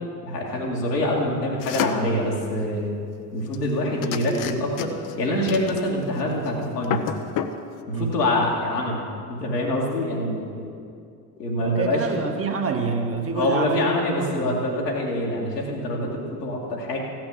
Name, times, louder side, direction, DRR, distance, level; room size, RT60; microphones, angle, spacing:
voice 1, 0.2-2.9 3.3-4.9 5.2-7.1 7.9-9.0 9.3-10.6 11.4-12.1 13.3-17.0, left 1 dB, 75° left, -3 dB, 2.4 m, -25 dB
sound 1, 1.6-2.1 3.5-3.7 4.0-5.1 5.5-6.2 6.5-6.6 6.8-7.6, left 9 dB, 40° left, 0.8 m, -29 dB
voice 2, 11.6-14.6, right 5 dB, 30° right, 3 dB, 1.4 m, -27 dB
15.5 x 6.2 x 7.5 m, 2.4 s
figure-of-eight pair, 65°, 48 cm